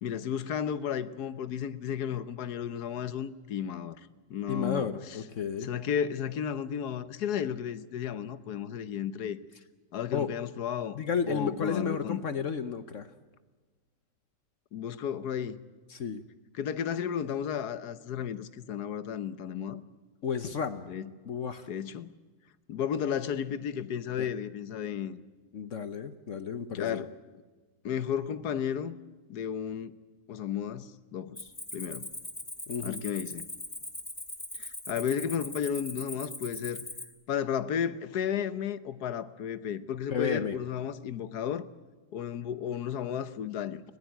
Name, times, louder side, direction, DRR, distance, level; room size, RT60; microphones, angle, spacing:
voice 1, 0.0-4.0 4.3-5.2 5.6-9.4 9.9-11.0 11.3-12.2 14.7-15.6 16.5-19.8 20.9-21.1 21.7-22.1 22.7-25.2 26.7-27.1 27.8-29.0 29.3-30.0 30.3-32.1 32.8-33.4 34.6-36.8 37.3-41.6 42.1-43.8, left 8 dB, 70° left, 1.5 m, -33 dB
voice 2, 4.5-5.7 10.1-10.3 10.9-13.1 15.9-16.2 20.2-20.9 21.3-21.7 24.2-24.3 25.5-27.0 32.7-33.0 40.1-40.6, left 6 dB, 55° left, 1.1 m, -32 dB
Cricket, 31.4-37.0, left 1 dB, 15° left, 2.0 m, -41 dB
21.5 x 17.5 x 9.3 m
omnidirectional pair, 1.8 m